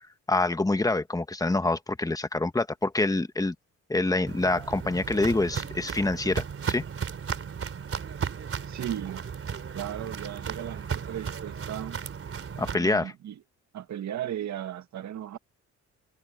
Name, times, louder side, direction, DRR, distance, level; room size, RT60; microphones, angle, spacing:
voice 1, 0.3-3.5 3.9-6.8 12.6-13.1, left 2 dB, 10° left, 1.4 m, -26 dB
Walk footsteps, 4.3-12.7, right 7 dB, 45° right, 3.5 m, -35 dB
voice 2, 8.7-9.3 9.7-12.0 12.7-13.4 13.7-15.4, right 11 dB, 65° right, 1.9 m, -36 dB
cardioid pair, 90°, 30 cm